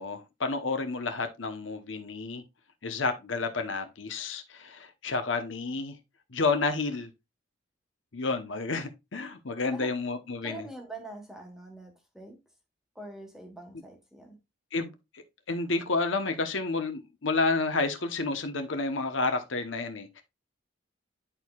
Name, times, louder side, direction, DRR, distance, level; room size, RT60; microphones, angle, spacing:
voice 1, 0.0-2.4 2.8-5.9 6.3-7.1 8.1-10.6 14.7-20.2, left 3 dB, 70° left, 1.0 m, -30 dB
voice 2, 10.4-12.4 12.9-14.4, right 2 dB, ahead, 1.3 m, -44 dB
10.0 x 4.6 x 2.4 m
head